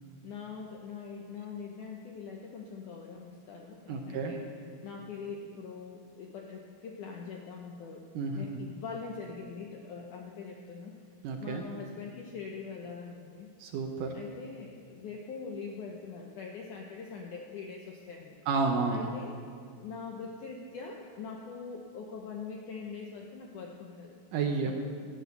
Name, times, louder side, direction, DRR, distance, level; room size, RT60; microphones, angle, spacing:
voice 1, 0.2-4.5 4.8-8.1 8.3-10.9 11.4-13.5 14.1-18.4 18.9-19.4 19.7-24.1 24.6-24.7, left 5 dB, 90° left, 1 dB, 1.8 m, -43 dB
voice 2, 3.9-4.3 8.2-8.6 11.2-11.6 13.6-14.1 18.5-19.1 24.3-24.7, right 4 dB, 75° right, 2 dB, 2.0 m, -31 dB
13.0 x 7.7 x 8.0 m, 2.1 s
omnidirectional pair, 4.8 m